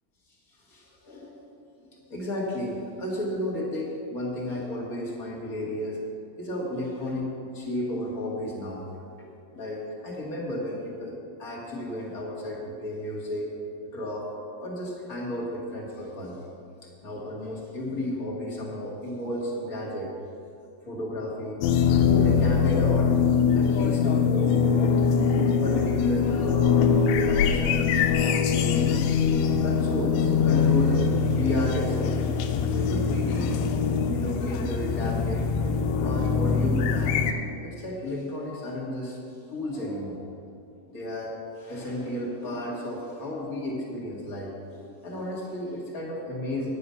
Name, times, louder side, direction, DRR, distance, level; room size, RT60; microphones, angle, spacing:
voice 1, 0.7-1.5 1.8-6.1 6.4-7.2 7.6-8.8 9.2-9.3 9.5-13.5 13.9-14.3 14.6-16.4 17.0-20.1 20.8-21.6 21.9-23.2 23.5-24.8 25.3-26.8 27.1-27.9 28.2-29.1 29.6-32.1 32.8-33.6 34.0-35.5 36.0-37.3 37.6-39.2 39.5-40.2 40.9-44.5 44.8-46.7, left 1 dB, 35° left, -4 dB, 1.4 m, -33 dB
sound 1, 21.6-37.3, left 6 dB, 85° left, 2.4 m, -23 dB
9.9 x 9.9 x 5.5 m, 2.5 s
omnidirectional pair, 4.0 m